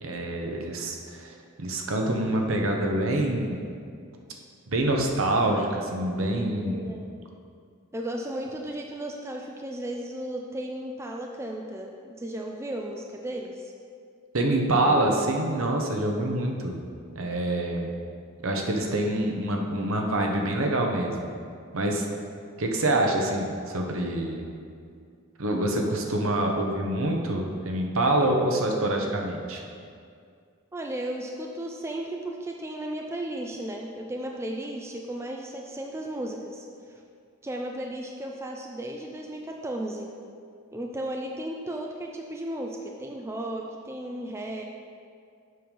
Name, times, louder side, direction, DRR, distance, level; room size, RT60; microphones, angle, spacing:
voice 1, 0.0-3.7 4.7-6.9 14.3-16.8 17.1-17.9 18.4-21.3 21.7-22.1 22.6-24.4 25.4-29.6, right 1 dB, 65° right, 2 dB, 1.0 m, -26 dB
voice 2, 6.6-7.1 7.9-13.7 30.7-36.7 37.4-40.1 40.7-44.6, right 1 dB, 10° right, 1 dB, 0.4 m, -35 dB
7.7 x 5.3 x 5.4 m, 2.3 s
head